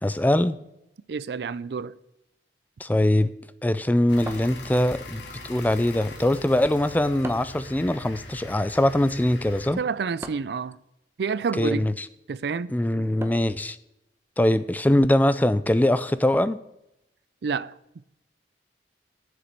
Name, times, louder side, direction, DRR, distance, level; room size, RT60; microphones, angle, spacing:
voice 1, 0.0-0.6 2.8-3.3 3.6-9.8 11.6-12.1 12.7-13.8 14.4-16.6, left 1 dB, 10° left, 0.4 m, -22 dB
voice 2, 1.1-1.9 9.8-10.8 11.2-11.9 12.3-12.7 17.4-17.7, right 5 dB, 65° right, 0.4 m, -28 dB
sound 1, 4.1-9.7, left 2 dB, 80° left, 1.9 m, -42 dB
sound 2, 4.3-5.1 7.2-7.7 10.2-10.6 13.2-13.6, right 1 dB, 15° right, 0.8 m, -39 dB
7.5 x 6.9 x 8.1 m
head